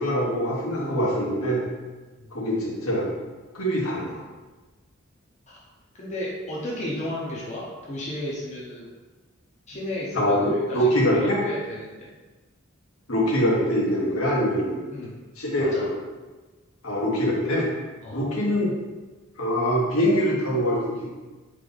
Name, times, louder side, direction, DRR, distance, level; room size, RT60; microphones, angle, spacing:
voice 1, 0.0-1.6 2.3-3.1 3.5-4.2 10.1-11.4 13.1-14.8 15.4-15.9 16.8-17.6 18.1-18.7 19.4-21.1, equal, 80° left, -5 dB, 1.3 m, -23 dB
voice 2, 6.0-8.9 9.7-12.1 14.9-15.2 15.6-15.9 18.0-18.2, left 1 dB, 35° left, -5 dB, 0.8 m, -33 dB
4.0 x 3.3 x 3.9 m, 1.2 s
head